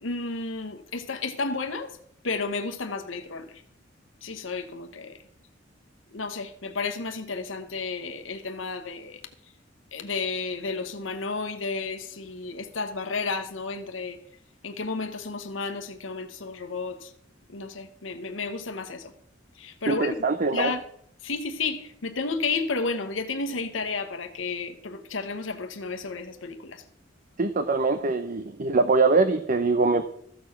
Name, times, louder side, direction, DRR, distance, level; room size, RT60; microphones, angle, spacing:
voice 1, 0.0-2.0 2.2-3.6 4.2-5.2 6.1-9.2 9.9-14.2 14.6-17.1 17.5-19.1 19.5-20.1 20.5-20.8 21.2-26.8, left 4 dB, 85° left, 1.1 m, -32 dB
voice 2, 19.9-20.7 27.4-30.0, right 3 dB, 45° right, 0.7 m, -23 dB
14.0 x 6.9 x 5.8 m
head